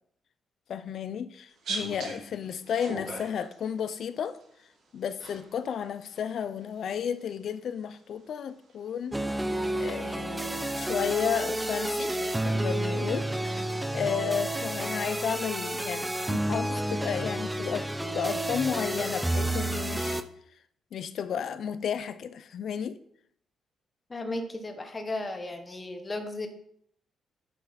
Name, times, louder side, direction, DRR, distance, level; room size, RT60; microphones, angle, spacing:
voice 1, 0.7-4.4 4.9-9.2 9.8-12.1 12.4-13.6 13.9-20.2 20.9-23.0, left 8 dB, 60° left, 0.6 m, -33 dB
sound 1, 1.5-4.4 5.2-5.7 6.0-7.2 8.1-8.2 8.7-8.9, right 3 dB, 65° right, 3.7 m, -39 dB
sound 2, 9.1-20.2, right 1 dB, 5° right, 0.5 m, -30 dB
voice 2, 24.1-26.5, left 2 dB, 20° left, 1.2 m, -35 dB
9.9 x 6.6 x 4.2 m
cardioid pair, 145°, 0 cm